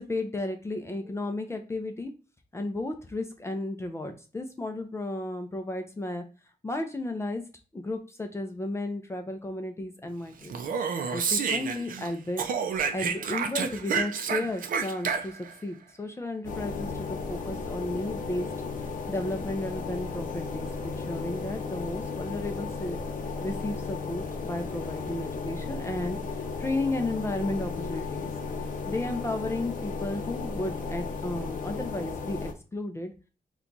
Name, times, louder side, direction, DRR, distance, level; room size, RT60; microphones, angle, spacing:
voice 1, 0.0-2.1 2.5-6.2 6.6-7.4 7.7-10.6 11.1-12.4 12.9-18.5 19.1-23.0 23.4-26.2 26.6-28.3 28.9-33.1, left 2 dB, 15° left, 4 dB, 0.4 m, -33 dB
Speech, 10.4-12.1 12.4-15.5, right 6 dB, 60° right, 0.4 m, -29 dB
sound 1, 16.4-32.5, left 4 dB, 55° left, 0.6 m, -35 dB
2.8 x 2.3 x 3.8 m, 0.34 s
wide cardioid pair, 175°, 16 cm